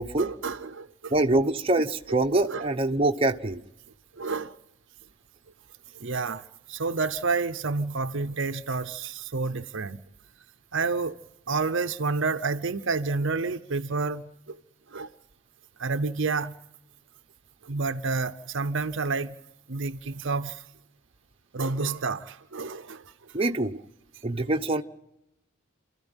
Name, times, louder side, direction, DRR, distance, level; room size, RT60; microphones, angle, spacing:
voice 1, 0.2-1.1 2.5-2.7 4.1-4.6 5.9-10.0 10.7-11.1 11.5-14.6 14.9-15.1 15.8-16.5 17.6-19.4 19.7-20.6 21.5-23.5, right 4 dB, 55° right, 0.8 m, -29 dB
voice 2, 1.1-3.6 23.3-23.7 24.2-24.8, right 2 dB, 25° right, 1.0 m, -24 dB
29.0 x 14.0 x 9.0 m
head